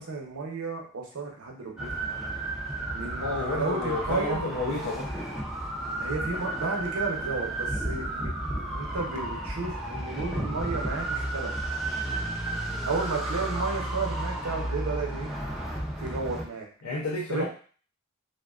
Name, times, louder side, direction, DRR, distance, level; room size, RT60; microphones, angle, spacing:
voice 1, 0.0-2.0 2.9-4.4 6.0-8.3 8.6-11.5 12.9-15.3 16.0-16.7 17.3-17.5, right 4 dB, 75° right, 1 dB, 0.7 m, -33 dB
sound 1, 1.8-16.5, right 1 dB, ahead, 0.3 m, -32 dB
voice 2, 3.2-5.1 16.8-17.5, left 2 dB, 85° left, -4 dB, 0.5 m, -30 dB
2.4 x 2.2 x 2.3 m, 0.42 s
head